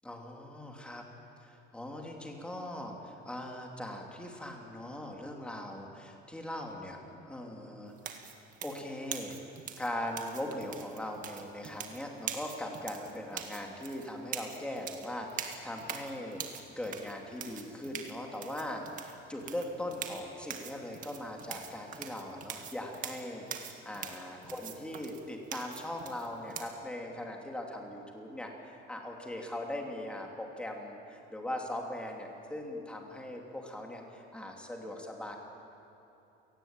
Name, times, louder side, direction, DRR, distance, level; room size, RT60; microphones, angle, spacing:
voice 1, 0.0-1.0 1.4-7.0 7.3-8.3 8.6-9.3 9.8-35.4, left 1 dB, 5° left, 1 dB, 2.8 m, -40 dB
sound 1, 8.0-26.7, right 8 dB, 40° right, 1.9 m, -43 dB
28.5 x 18.5 x 9.0 m, 3.0 s
cardioid pair, 175°, 21 cm